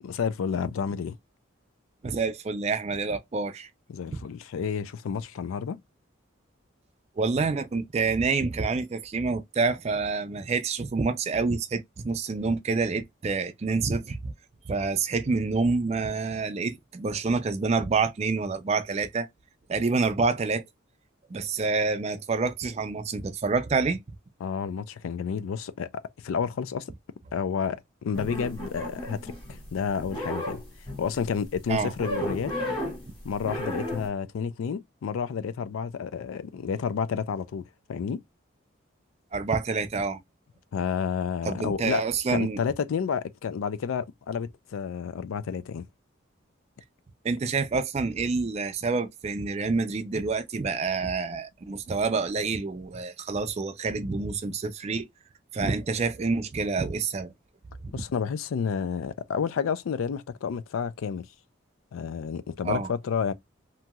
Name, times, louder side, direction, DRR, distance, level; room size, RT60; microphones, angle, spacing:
voice 1, 0.0-1.2 3.9-5.8 24.4-26.9 27.3-30.6 31.0-32.5 33.2-38.2 40.7-42.0 42.3-45.8 57.9-61.3 61.9-63.3, left 6 dB, 85° left, 0.4 m, -30 dB
voice 2, 2.0-3.7 7.2-14.3 14.7-19.3 19.7-20.6 21.3-24.0 31.7-31.9 39.3-40.2 41.5-42.6 47.2-55.1 55.5-57.3 57.8-57.9 62.6-62.9, right 4 dB, 30° right, 0.3 m, -27 dB
sound 1, 28.1-29.7 30.0-31.2 32.0-33.1 33.4-34.1, equal, 25° left, 1.6 m, -33 dB
2.9 x 2.7 x 2.2 m
head